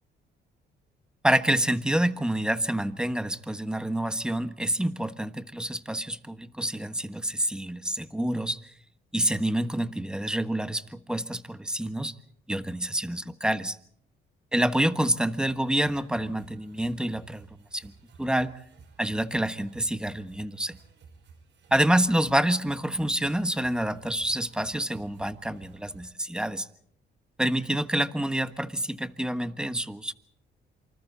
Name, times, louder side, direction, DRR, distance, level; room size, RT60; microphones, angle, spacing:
voice 1, 1.2-8.7 9.1-12.1 12.5-13.8 14.5-17.9 18.2-18.5 19.0-20.8 21.7-26.7 27.4-30.1, right 1 dB, 5° right, 11 dB, 1.3 m, -27 dB
sound 1, 15.5-26.1, right 5 dB, 65° right, 5.7 m, -54 dB
27.5 x 25.5 x 4.1 m, 0.65 s
cardioid pair, 90°, 20 cm